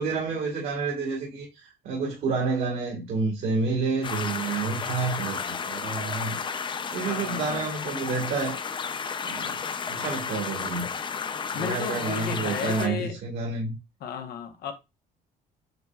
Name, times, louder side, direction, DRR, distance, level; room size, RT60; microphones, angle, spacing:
voice 1, 0.0-6.4 6.9-8.6 9.2-9.6 9.9-10.9 11.5-13.8, right 4 dB, 60° right, 1.9 m, -29 dB
sound 1, 4.0-12.9, left 6 dB, 30° left, 0.5 m, -32 dB
voice 2, 7.0-7.6 11.5-13.2 14.0-14.7, left 7 dB, 65° left, 1.1 m, -34 dB
7.9 x 2.7 x 2.4 m
cardioid pair, 110°, 17 cm